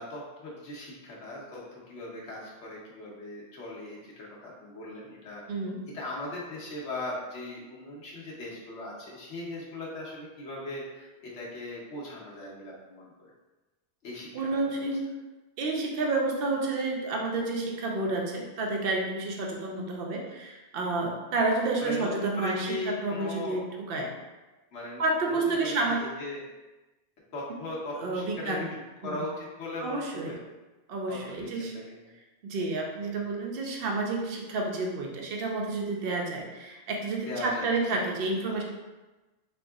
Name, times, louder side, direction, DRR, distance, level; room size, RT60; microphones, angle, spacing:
voice 1, 0.0-5.4 5.9-13.3 14.0-14.9 21.8-23.6 24.7-26.4 27.3-30.4 31.1-32.1 37.2-37.7 38.4-38.6, left 2 dB, 85° left, -4 dB, 1.2 m, -39 dB
voice 2, 5.5-5.8 14.3-15.1 15.6-24.1 25.0-26.1 27.9-28.7 29.0-29.2 29.8-30.4 30.9-31.7 32.4-38.6, right 2 dB, 60° right, 1 dB, 0.8 m, -30 dB
3.7 x 3.4 x 2.3 m, 1.1 s
omnidirectional pair, 1.2 m